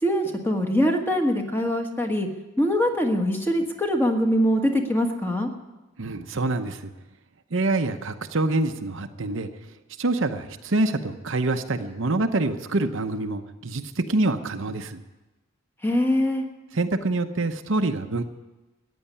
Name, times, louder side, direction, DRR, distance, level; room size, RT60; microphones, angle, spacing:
voice 1, 0.0-2.3 2.6-5.5 15.8-16.4, equal, 10° left, 3 dB, 1.4 m, -23 dB
voice 2, 6.0-6.9 7.5-9.5 10.0-15.0 16.7-18.2, right 2 dB, 60° right, 7 dB, 0.8 m, -26 dB
14.5 x 9.6 x 9.9 m, 1.1 s
head